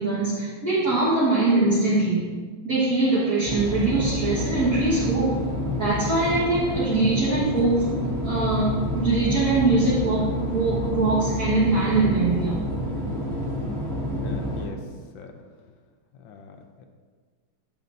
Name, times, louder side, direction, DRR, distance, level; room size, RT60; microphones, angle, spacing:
voice 1, 0.0-2.3 2.6-5.4 5.8-12.5, right 3 dB, 45° right, -9 dB, 1.9 m, -22 dB
sound 1, 3.4-14.7, left 1 dB, ahead, 1.9 m, -28 dB
voice 2, 14.2-15.4 16.1-16.8, left 4 dB, 70° left, 4 dB, 1.4 m, -43 dB
11.0 x 7.2 x 2.6 m, 1.5 s
omnidirectional pair, 2.4 m